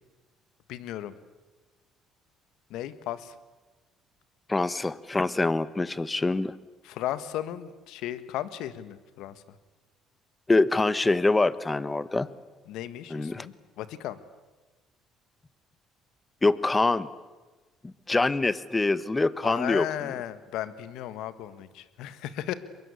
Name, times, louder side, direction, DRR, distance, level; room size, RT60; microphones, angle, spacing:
voice 1, 0.7-1.1 2.7-3.3 6.8-9.4 12.7-14.2 19.4-22.5, left 12 dB, 75° left, 13 dB, 1.5 m, -35 dB
voice 2, 4.5-6.5 10.5-12.3 13.1-13.5 16.4-17.1 17.8-20.1, left 2 dB, 20° left, 16 dB, 1.2 m, -25 dB
23.5 x 22.5 x 8.3 m, 1.2 s
supercardioid pair, 75°, 0 cm